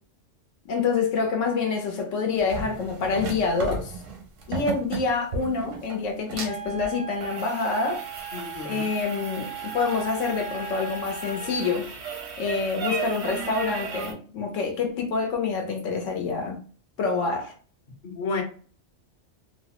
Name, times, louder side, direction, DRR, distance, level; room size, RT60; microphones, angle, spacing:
voice 1, 0.7-3.9 4.5-8.0 8.6-11.9 12.4-16.6 17.0-17.5, left 4 dB, 90° left, 1.1 m, -27 dB
sound 1, 2.4-14.1, right 4 dB, 90° right, 1.1 m, -35 dB
Wind instrument woodwind instrument, 6.4-11.8, right 7 dB, 10° left, 0.3 m, -38 dB
voice 2, 8.3-8.9 18.0-18.4, left 4 dB, 50° left, 0.8 m, -31 dB
2.9 x 2.1 x 2.8 m
omnidirectional pair, 1.3 m